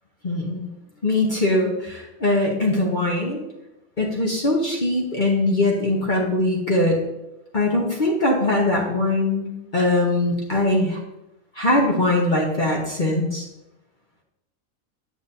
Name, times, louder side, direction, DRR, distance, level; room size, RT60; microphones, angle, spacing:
voice 1, 0.2-0.7 1.0-3.4 4.0-7.0 7.5-11.0 11.6-13.4, left 2 dB, 35° left, -2 dB, 1.1 m, -21 dB
8.9 x 7.2 x 2.7 m, 0.93 s
omnidirectional pair, 1.5 m